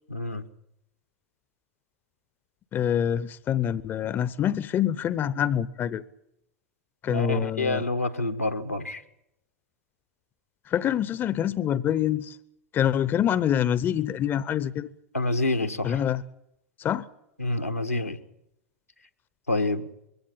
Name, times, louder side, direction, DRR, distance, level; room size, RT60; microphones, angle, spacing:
voice 1, 0.1-0.4 7.1-9.0 15.1-16.0 17.4-18.2 19.5-19.9, left 2 dB, 85° left, 1.3 m, -27 dB
voice 2, 2.7-6.0 7.0-7.8 10.7-12.4 12.7-14.9 15.8-16.2 16.8-17.0, left 10 dB, 25° left, 0.7 m, -26 dB
22.5 x 16.0 x 8.8 m
figure-of-eight pair, 90°, 8 cm